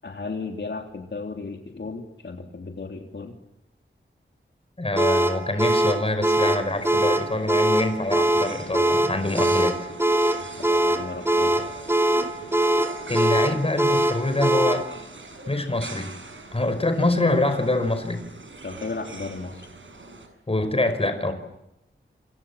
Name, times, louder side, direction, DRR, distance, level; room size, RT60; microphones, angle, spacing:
voice 1, 0.0-3.3 10.4-11.7 18.6-19.7, left 3 dB, 65° left, 3 dB, 3.4 m, -35 dB
voice 2, 4.8-9.7 13.1-14.9 15.5-16.2 16.5-18.2 20.5-21.3, left 2 dB, 30° left, 9 dB, 5.4 m, -25 dB
sound 1, 5.0-14.9, right 1 dB, 10° right, 4.2 m, -22 dB
sound 2, 6.5-20.3, right 3 dB, 75° right, 7.2 m, -42 dB
28.5 x 28.0 x 7.4 m, 0.88 s
wide cardioid pair, 90°, 20 cm